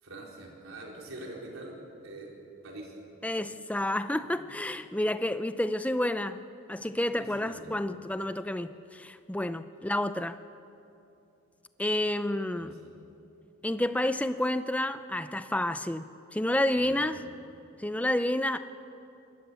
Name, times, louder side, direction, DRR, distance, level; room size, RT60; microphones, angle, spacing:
voice 1, 0.0-1.8 2.0-2.3 2.6-2.9 4.3-4.4 7.2-7.8 12.5-12.9 16.8-17.0, right 1 dB, 70° right, -2 dB, 4.5 m, -44 dB
voice 2, 3.2-6.4 6.7-10.4 11.8-12.7 13.6-17.2 17.8-18.6, left 1 dB, 5° left, 11 dB, 0.5 m, -30 dB
23.0 x 18.5 x 7.1 m, 2.8 s
head